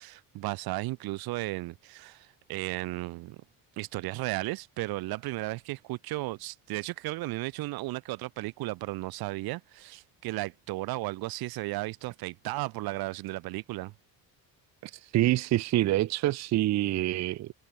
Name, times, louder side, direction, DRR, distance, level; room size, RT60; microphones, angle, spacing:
voice 1, 0.0-3.4 3.8-13.9, right 20 dB, 85° right, 1.3 m, -35 dB
voice 2, 14.8-17.5, right 15 dB, 50° right, 0.6 m, -26 dB
cardioid pair, 160°, 36 cm